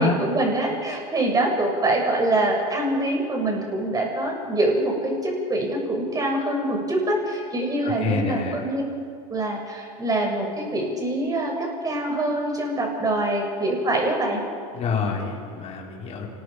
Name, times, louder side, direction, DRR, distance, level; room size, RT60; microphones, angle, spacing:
voice 1, 0.0-8.8 9.3-14.4, right 1 dB, 20° right, 0 dB, 7.0 m, -24 dB
voice 2, 7.8-8.6 14.7-16.3, left 4 dB, 35° left, -2 dB, 4.9 m, -26 dB
28.0 x 21.0 x 5.2 m, 2.3 s
hypercardioid pair, 110°, 19 cm